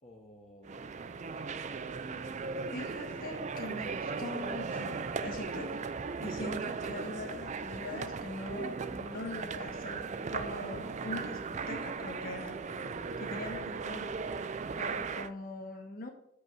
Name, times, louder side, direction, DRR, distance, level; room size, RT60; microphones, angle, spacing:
voice 1, 0.0-1.8 2.1-2.7 6.3-6.4, left 1 dB, 30° left, -1 dB, 0.9 m, -57 dB
sound 1, 0.6-15.3, right 4 dB, 35° right, 0.4 m, -37 dB
voice 2, 2.7-5.8 6.2-12.6 13.2-14.1 14.8-16.1, left 2 dB, 45° left, 2 dB, 1.3 m, -42 dB
6.8 x 5.2 x 6.1 m, 0.79 s
head